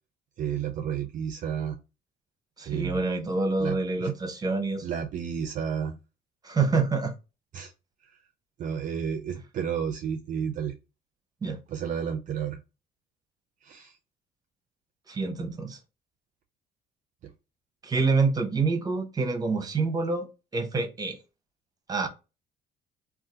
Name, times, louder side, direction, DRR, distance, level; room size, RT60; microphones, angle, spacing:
voice 1, 0.4-1.8 2.7-3.0 3.6-4.1 4.8-6.0 7.5-7.7 8.0-8.1 8.6-10.7 11.7-12.6 13.6-14.0 17.2-17.3, right 8 dB, 50° right, 0.4 m, -31 dB
voice 2, 2.6-4.9 6.4-7.1 11.4-11.6 15.1-15.8 17.8-21.2 21.9-22.1, right 4 dB, 20° right, 0.8 m, -27 dB
2.7 x 2.4 x 3.6 m
cardioid pair, 110°, 17 cm